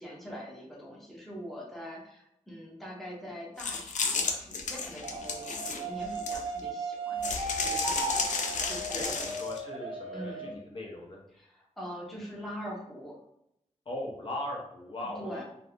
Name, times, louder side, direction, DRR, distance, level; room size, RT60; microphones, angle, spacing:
voice 1, 0.0-7.4 7.6-9.3 10.1-10.6 11.4-13.2 15.2-15.4, equal, ahead, -4 dB, 0.7 m, -43 dB
sound 1, 3.6-6.6 7.2-9.6, left 5 dB, 90° left, 0.4 m, -32 dB
sound 2, 5.0-10.5, right 3 dB, 50° right, 0.4 m, -36 dB
voice 2, 8.9-11.2 13.9-15.4, left 1 dB, 45° left, -2 dB, 0.6 m, -39 dB
2.6 x 2.3 x 3.4 m, 0.78 s
wide cardioid pair, 170°, 12 cm